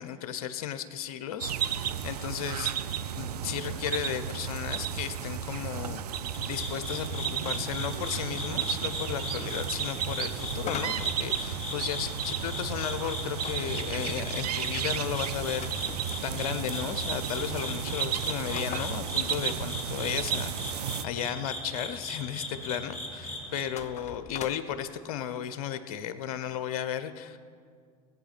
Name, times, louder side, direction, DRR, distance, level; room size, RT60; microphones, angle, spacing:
voice 1, 0.0-6.0 6.4-27.4, left 9 dB, 70° left, 12 dB, 0.7 m, -35 dB
sound 1, 1.4-21.0, right 9 dB, 90° right, 0.5 m, -33 dB
sound 2, 6.3-23.6, left 1 dB, 5° left, 3.7 m, -38 dB
sound 3, 10.6-12.1 13.4-16.3 17.0-17.1 17.3-17.4 18.0-20.2 23.6-24.8, left 8 dB, 35° left, 0.8 m, -42 dB
17.0 x 8.5 x 4.2 m, 2.1 s
hypercardioid pair, 90°, 20 cm